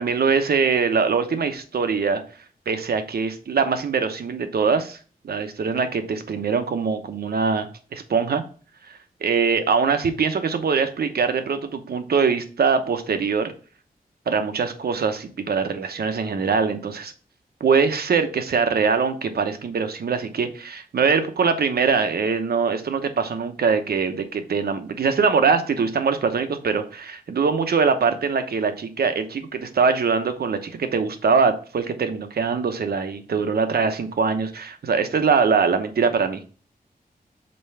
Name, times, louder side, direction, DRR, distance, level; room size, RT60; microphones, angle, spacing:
voice 1, 0.0-2.2 2.7-5.0 5.2-8.4 8.9-13.5 14.3-17.1 17.6-36.4, right 5 dB, 75° right, 8 dB, 0.9 m, -22 dB
5.4 x 4.4 x 5.6 m, 0.39 s
wide cardioid pair, 170°, 16 cm